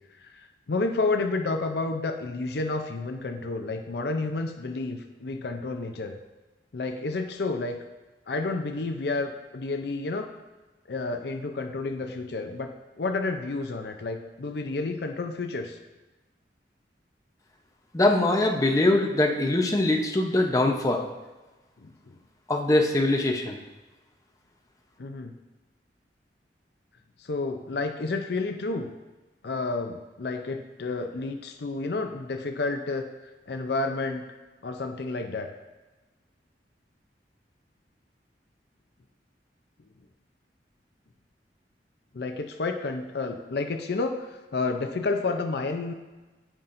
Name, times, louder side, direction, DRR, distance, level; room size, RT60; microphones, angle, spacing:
voice 1, 0.2-6.1 6.7-7.8 8.3-10.3 10.9-15.8 21.8-22.2 25.0-25.3 27.2-28.9 29.4-33.1 33.5-34.3 34.6-35.5 42.1-45.9, left 3 dB, 65° left, 6 dB, 0.5 m, -30 dB
voice 2, 17.9-21.1 22.5-23.6, left 2 dB, 20° left, 1 dB, 0.7 m, -22 dB
13.0 x 5.6 x 2.6 m, 1.2 s
head